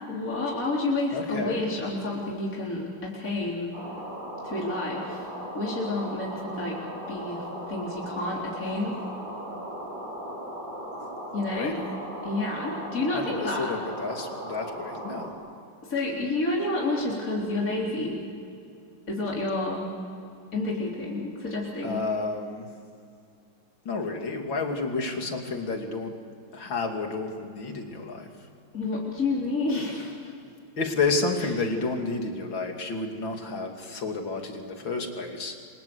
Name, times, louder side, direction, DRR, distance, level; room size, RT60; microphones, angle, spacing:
voice 1, 0.1-3.7 4.4-5.2 5.5-6.8 7.1-9.0 11.3-11.7 12.2-13.7 15.8-18.2 19.1-19.8 20.5-22.0 28.7-30.3, left 2 dB, 45° left, -4 dB, 4.3 m, -29 dB
voice 2, 1.1-1.6 11.5-11.8 13.1-15.3 21.8-22.7 23.9-26.1 26.5-28.3 30.8-35.6, left 3 dB, 80° left, 3 dB, 3.4 m, -30 dB
sound 1, 3.7-15.3, equal, 75° right, 6.8 m, -37 dB
28.5 x 25.0 x 8.1 m, 2.4 s
omnidirectional pair, 2.1 m